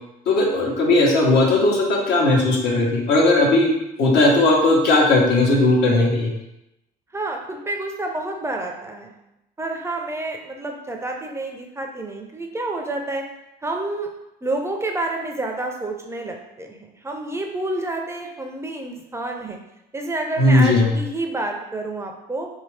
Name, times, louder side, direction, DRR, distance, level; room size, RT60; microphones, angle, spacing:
voice 1, 0.3-3.7 4.0-6.3 20.4-20.9, left 2 dB, 75° left, -2 dB, 1.1 m, -17 dB
voice 2, 7.1-9.2 9.6-13.2 13.6-14.1 14.4-19.6 19.9-22.5, right 2 dB, 15° right, 2 dB, 0.4 m, -29 dB
3.6 x 2.7 x 3.2 m, 0.89 s
cardioid pair, 110°, 17 cm